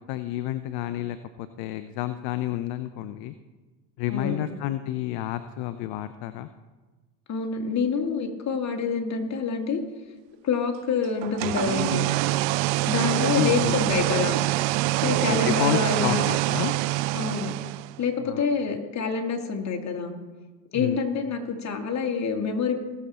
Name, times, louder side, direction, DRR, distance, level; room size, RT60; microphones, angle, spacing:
voice 1, 0.1-3.3 4.0-6.5 13.3-13.8 15.0-16.8 18.2-18.4 20.7-21.0, left 13 dB, 55° left, 12 dB, 0.7 m, -30 dB
voice 2, 4.1-4.4 7.3-9.8 10.4-12.1 12.9-14.4 15.0-16.2 17.1-17.5 18.0-20.1 20.7-22.8, left 5 dB, 35° left, 3 dB, 2.1 m, -27 dB
sound 1, 11.2-18.0, right 19 dB, 55° right, 0.5 m, -25 dB
18.0 x 6.9 x 4.3 m, 1.3 s
hypercardioid pair, 80°, 49 cm